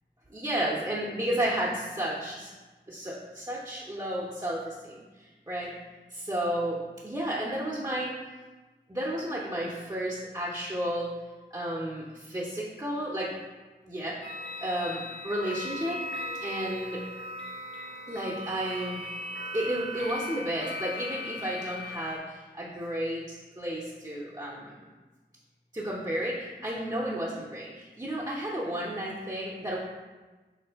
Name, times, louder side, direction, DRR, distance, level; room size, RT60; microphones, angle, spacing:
voice 1, 0.3-2.5 2.9-5.0 5.5-5.7 6.1-8.1 8.9-11.1 11.5-13.3 13.8-14.2 14.6-16.0 16.4-17.0 18.1-19.0 19.5-24.7 25.7-29.8, right 1 dB, 20° right, -6 dB, 0.6 m, -32 dB
sound 1, 14.2-22.2, left 1 dB, 85° left, 0.7 m, -38 dB
3.6 x 2.6 x 3.3 m, 1.2 s
wide cardioid pair, 45°, 19 cm